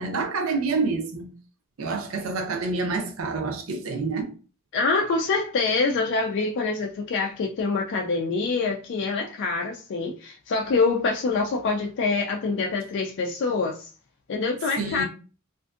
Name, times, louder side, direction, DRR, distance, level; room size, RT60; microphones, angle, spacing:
voice 1, 0.0-1.3 1.8-4.3 14.8-15.0, right 4 dB, 75° right, 0.6 m, -27 dB
voice 2, 4.7-13.9 14.3-15.0, left 4 dB, 60° left, 0.3 m, -25 dB
2.5 x 2.5 x 2.4 m
head